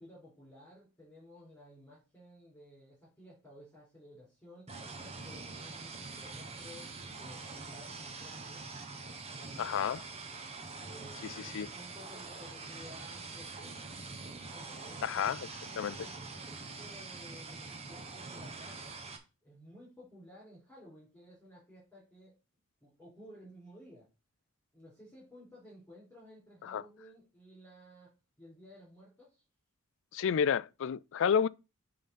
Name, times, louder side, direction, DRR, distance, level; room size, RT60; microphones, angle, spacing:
voice 1, 0.0-4.7 5.2-8.9 9.4-10.0 10.8-13.8 14.5-15.3 15.7-19.0 19.4-22.3 22.8-24.1 24.7-28.1 28.4-29.4, equal, 10° left, 4.5 m, -55 dB
sound 1, 4.7-19.2, right 3 dB, 30° right, 1.4 m, -45 dB
voice 2, 9.6-10.0 11.2-11.7 15.0-15.4 15.8-15.9 26.6-26.8 30.1-31.5, left 7 dB, 60° left, 0.4 m, -30 dB
8.6 x 3.9 x 5.6 m
head